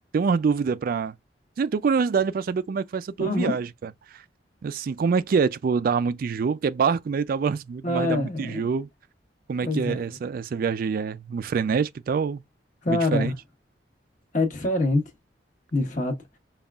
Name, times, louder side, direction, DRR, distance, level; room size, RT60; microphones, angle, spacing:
voice 1, 0.1-1.1 1.6-3.7 4.6-8.9 9.5-12.4 12.9-13.3, right 5 dB, 55° right, 0.3 m, -25 dB
voice 2, 3.2-3.6 7.8-8.7 9.6-10.0 12.8-13.3 14.3-15.0 15.7-16.1, left 2 dB, 45° left, 1.3 m, -25 dB
5.3 x 2.4 x 2.3 m
head